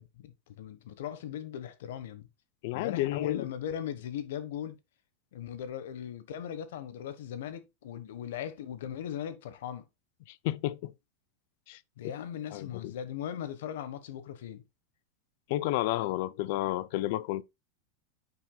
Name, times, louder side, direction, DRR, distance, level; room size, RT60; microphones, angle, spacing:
voice 1, 0.0-2.3 2.7-4.8 5.3-9.9 12.0-14.6, left 9 dB, 75° left, 1.2 m, -38 dB
voice 2, 2.6-3.5 10.4-10.9 11.7-11.8 12.5-12.9 15.5-17.4, left 15 dB, 55° left, 0.5 m, -31 dB
9.4 x 6.0 x 2.3 m
supercardioid pair, 160°, 0 cm